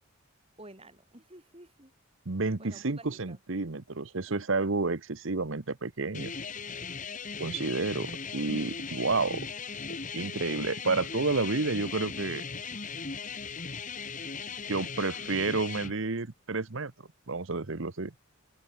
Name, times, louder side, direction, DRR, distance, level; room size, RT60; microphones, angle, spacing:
voice 1, 0.6-1.9 2.6-3.4 14.8-15.3, right 1 dB, 25° right, 4.8 m, -51 dB
voice 2, 2.3-6.3 7.4-9.5 10.1-12.4 14.7-16.9 17.3-18.1, right 3 dB, 65° right, 1.1 m, -30 dB
sound 1, 6.1-15.9, left 5 dB, 35° left, 1.8 m, -38 dB
head